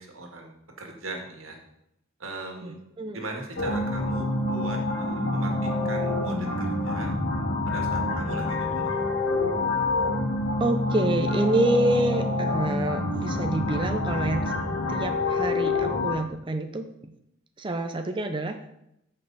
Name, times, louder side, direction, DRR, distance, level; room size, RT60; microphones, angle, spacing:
voice 1, 0.0-1.6 2.2-2.8 3.1-7.1 7.7-8.9, right 2 dB, 85° right, 1 dB, 1.9 m, -39 dB
voice 2, 2.6-3.2 10.6-17.1 17.6-18.6, right 1 dB, 25° right, 6 dB, 0.5 m, -27 dB
sound 1, 3.6-16.2, left 2 dB, 85° left, 1.9 m, -27 dB
14.0 x 5.4 x 4.0 m, 0.81 s
head